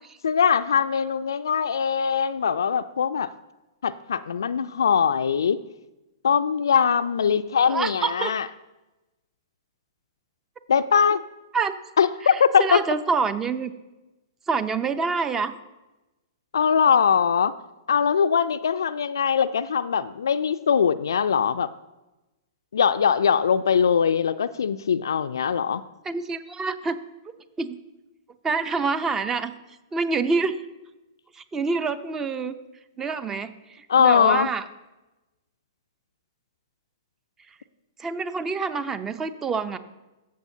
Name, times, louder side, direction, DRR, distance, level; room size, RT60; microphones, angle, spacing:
voice 1, 0.2-3.3 3.8-5.6 6.2-8.5 10.7-11.2 12.0-12.8 16.5-17.5 17.9-21.7 22.7-25.8 33.9-34.5, left 7 dB, 75° left, 12 dB, 0.3 m, -21 dB
voice 2, 7.7-8.3 11.5-11.7 12.2-13.7 14.5-15.5 26.0-27.0 27.6-27.8 28.4-29.5 29.9-30.6 31.4-32.5 33.0-33.5 33.8-34.6 38.0-39.8, right 4 dB, 15° right, 13 dB, 0.6 m, -26 dB
14.5 x 6.4 x 2.8 m, 1.0 s
figure-of-eight pair, 115°, 2 cm